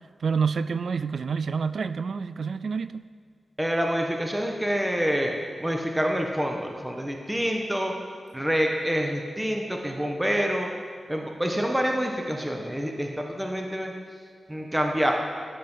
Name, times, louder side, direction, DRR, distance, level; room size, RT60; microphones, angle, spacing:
voice 1, 0.2-3.0, right 5 dB, 70° right, 14 dB, 0.4 m, -28 dB
voice 2, 3.6-7.9 8.3-10.7 11.1-13.9 14.5-15.1, equal, 10° right, 1 dB, 1.4 m, -27 dB
13.0 x 10.5 x 5.7 m, 2.1 s
cardioid pair, 75°, 0 cm